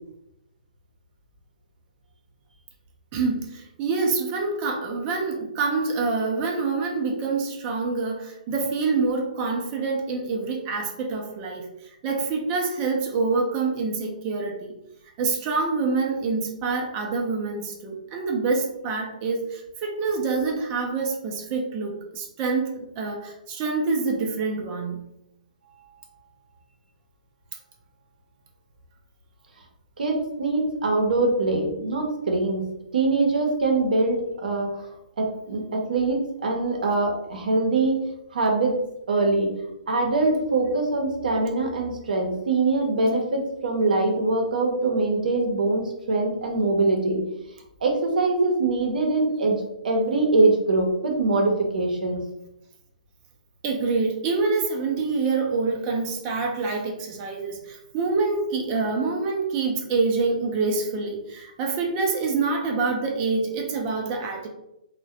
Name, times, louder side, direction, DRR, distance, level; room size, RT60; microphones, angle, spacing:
voice 1, 3.1-11.7 12.0-14.7 15.2-25.0 53.6-64.5, right 4 dB, 25° right, 1 dB, 0.4 m, -26 dB
voice 2, 30.0-34.9 35.2-38.0 38.3-38.7 39.1-39.6 39.9-47.3 47.8-49.6 49.8-52.2, right 3 dB, 75° right, 1 dB, 0.6 m, -23 dB
2.2 x 2.1 x 2.7 m, 0.87 s
hypercardioid pair, 150°, 5 cm